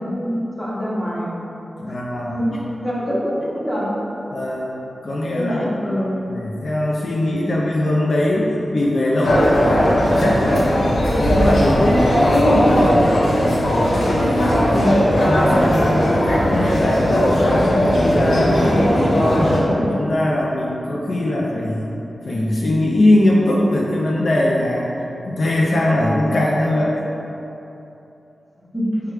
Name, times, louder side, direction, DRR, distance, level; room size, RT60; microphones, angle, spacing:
voice 1, 0.0-1.3 1.9-2.0 2.3-3.9 5.3-6.1 18.7-19.2 19.5-20.0 28.7-28.9, equal, 5° left, -7 dB, 1.0 m, -25 dB
voice 2, 1.8-2.4 4.3-10.8 11.1-13.7 14.1-17.4 17.8-18.8 19.4-22.0 22.2-24.9 25.3-26.9, left 1 dB, 60° left, -4 dB, 0.4 m, -21 dB
sound 1, 9.2-19.6, equal, 80° left, 0.8 m, -17 dB
4.6 x 2.3 x 4.7 m, 3.0 s
wide cardioid pair, 105°, 0 cm